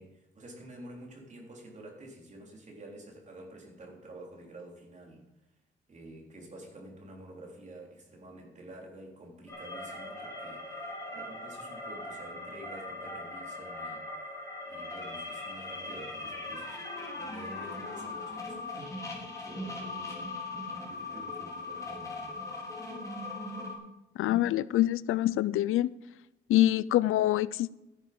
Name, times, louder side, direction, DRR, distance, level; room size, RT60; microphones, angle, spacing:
voice 1, 0.0-5.3 5.9-14.4 14.7-16.8 17.1-22.5, right 1 dB, 35° right, 3.8 m, -49 dB
sound 1, 9.5-23.7, left 2 dB, 15° left, 4.3 m, -40 dB
voice 2, 24.2-25.9 26.5-27.7, left 14 dB, 90° left, 0.5 m, -25 dB
13.5 x 10.5 x 5.4 m
cardioid pair, 145°, 21 cm